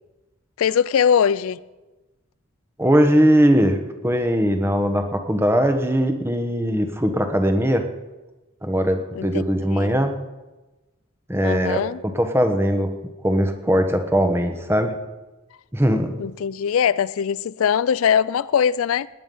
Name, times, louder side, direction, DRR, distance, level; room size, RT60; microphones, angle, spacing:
voice 1, 0.6-1.6 9.2-9.4 9.7-9.9 11.4-12.0 16.2-19.1, left 7 dB, 75° left, 0.4 m, -21 dB
voice 2, 2.8-7.8 8.6-10.1 11.3-12.9 13.2-14.9 15.7-16.2, equal, 10° right, 1.1 m, -20 dB
19.0 x 9.7 x 5.4 m
head